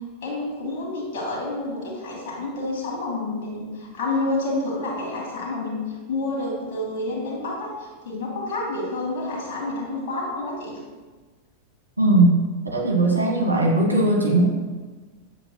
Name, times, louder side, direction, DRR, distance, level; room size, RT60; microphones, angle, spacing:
voice 1, 0.2-10.8, left 2 dB, 50° left, -3 dB, 1.9 m, -29 dB
voice 2, 12.0-12.4 12.7-14.4, right 2 dB, 85° right, -1 dB, 1.3 m, -18 dB
7.3 x 6.6 x 2.2 m, 1.3 s
figure-of-eight pair, 90°, 0 cm